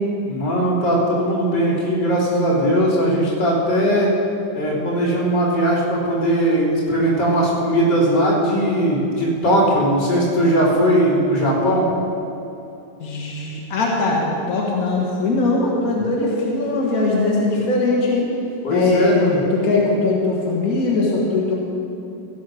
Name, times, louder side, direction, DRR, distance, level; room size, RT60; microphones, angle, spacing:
voice 1, 0.3-4.1 4.5-11.9 18.6-19.4, equal, 30° left, -8 dB, 3.7 m, -19 dB
voice 2, 13.0-18.3 18.7-21.5, left 3 dB, 55° left, -3 dB, 1.0 m, -20 dB
16.0 x 6.4 x 6.3 m, 2.9 s
omnidirectional pair, 3.8 m